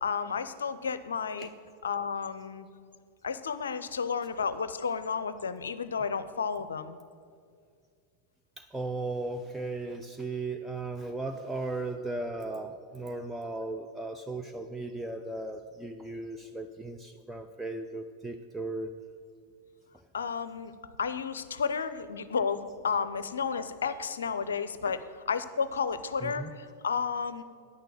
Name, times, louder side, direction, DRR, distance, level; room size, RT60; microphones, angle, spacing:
voice 1, 0.0-1.5 1.8-2.7 3.2-7.0 20.1-20.7 21.0-27.4, left 6 dB, 70° left, 13 dB, 0.5 m, -32 dB
voice 2, 8.6-18.9 26.2-26.5, right 2 dB, 5° right, 5 dB, 0.4 m, -36 dB
9.6 x 6.7 x 7.6 m, 2.2 s
figure-of-eight pair, 90°, 0 cm